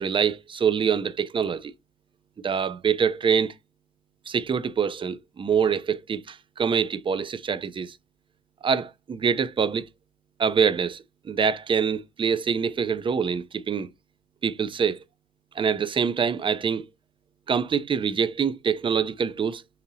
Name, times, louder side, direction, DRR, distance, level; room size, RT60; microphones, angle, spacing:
voice 1, 0.0-1.7 2.4-3.5 4.3-8.0 8.6-9.9 10.4-13.9 14.4-15.0 15.6-16.8 17.5-19.6, right 6 dB, 25° right, 0.4 m, -25 dB
2.7 x 2.7 x 4.0 m
cardioid pair, 90°, 20 cm